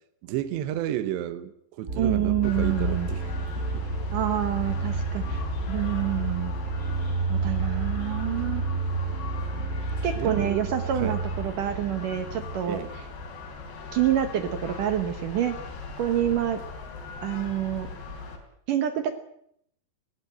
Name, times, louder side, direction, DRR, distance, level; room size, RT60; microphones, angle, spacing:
voice 1, 0.2-3.3 3.7-3.9 9.5-9.7 10.1-10.6 10.9-11.2 12.7-12.9, right 12 dB, 85° right, 12 dB, 3.4 m, -32 dB
sound 1, 1.9-13.8, right 3 dB, 30° right, 2.1 m, -31 dB
voice 2, 2.0-3.1 4.1-6.5 7.3-8.6 10.0-12.8 13.9-15.6 16.0-16.6 17.2-17.9 18.7-19.2, right 11 dB, 65° right, 10 dB, 2.3 m, -27 dB
sound 2, 2.4-18.4, left 4 dB, 75° left, 5.5 m, -38 dB
19.5 x 17.5 x 9.2 m, 0.69 s
omnidirectional pair, 4.9 m